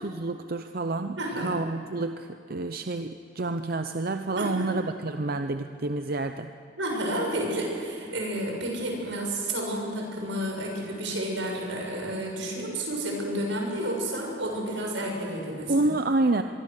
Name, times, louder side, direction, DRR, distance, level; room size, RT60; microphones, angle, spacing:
voice 1, 0.0-6.5 15.7-16.4, right 2 dB, 50° right, 8 dB, 0.7 m, -28 dB
voice 2, 1.2-1.5 4.4-4.8 6.8-15.9, right 1 dB, 80° right, 0 dB, 6.7 m, -31 dB
24.5 x 23.0 x 6.6 m, 2.7 s
head